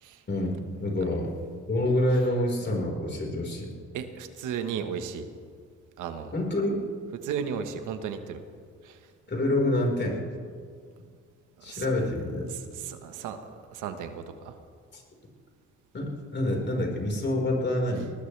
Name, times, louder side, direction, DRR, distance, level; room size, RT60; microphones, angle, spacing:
voice 1, 0.3-1.3 1.7-3.7 6.3-6.8 9.3-10.2 11.6-12.5 14.9-15.0 15.9-18.1, left 1 dB, 35° left, 0 dB, 4.6 m, -27 dB
voice 2, 3.9-5.3 6.0-6.3 7.2-8.4 8.8-9.0 11.6-11.8 12.5-14.5, right 7 dB, 90° right, 7 dB, 1.4 m, -35 dB
21.5 x 19.0 x 3.4 m, 2.1 s
cardioid pair, 90°, 30 cm